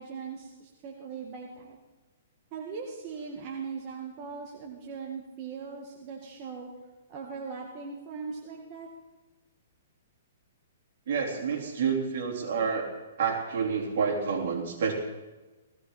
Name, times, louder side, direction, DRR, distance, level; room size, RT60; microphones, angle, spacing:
voice 1, 0.0-1.8 2.5-6.7 7.1-8.9, right 5 dB, 35° right, -1 dB, 1.9 m, -39 dB
voice 2, 11.1-12.9 13.2-14.9, right 6 dB, 60° right, 0 dB, 3.8 m, -28 dB
18.0 x 15.5 x 4.2 m, 1.2 s
hypercardioid pair, 150°, 0 cm